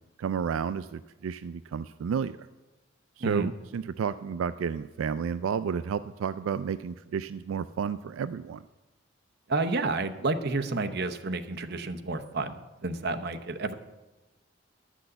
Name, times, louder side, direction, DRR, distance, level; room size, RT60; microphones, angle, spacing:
voice 1, 0.2-2.4 3.2-8.6, right 7 dB, 85° right, 13 dB, 0.3 m, -31 dB
voice 2, 3.2-3.5 9.5-13.7, right 3 dB, 55° right, 8 dB, 0.8 m, -30 dB
10.5 x 6.2 x 7.8 m, 1.1 s
head